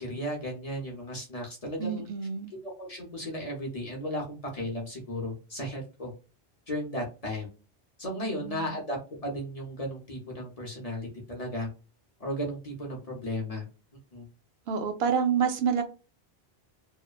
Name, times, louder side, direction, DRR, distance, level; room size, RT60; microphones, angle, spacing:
voice 1, 0.0-2.1 2.8-6.1 6.7-7.5 8.0-9.0 9.2-11.7 12.2-13.7 14.1-14.3, equal, 40° left, -1 dB, 0.7 m, -35 dB
voice 2, 1.8-2.5 8.2-8.8 14.7-15.8, right 7 dB, 70° right, 7 dB, 0.8 m, -28 dB
2.9 x 2.1 x 2.3 m, 0.32 s
omnidirectional pair, 1.1 m